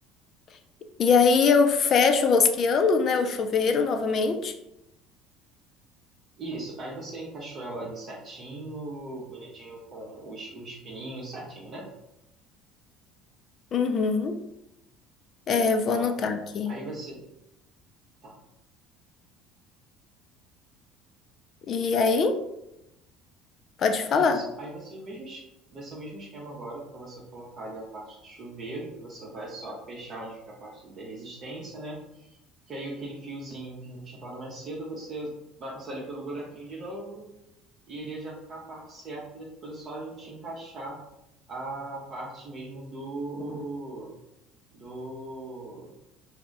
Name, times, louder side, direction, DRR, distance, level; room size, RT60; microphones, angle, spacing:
voice 1, 1.0-4.5 13.7-14.3 15.5-16.7 21.7-22.4 23.8-24.4, left 5 dB, 45° left, 7 dB, 0.4 m, -22 dB
voice 2, 6.4-11.9 15.9-16.1 16.6-17.2 18.2-18.4 24.1-25.4 25.7-32.4 32.7-35.3 35.6-37.3 37.9-41.0 41.5-44.1 44.7-45.9, right 2 dB, 40° right, -3 dB, 0.6 m, -39 dB
2.3 x 2.1 x 3.8 m, 0.86 s
hypercardioid pair, 65°, 0 cm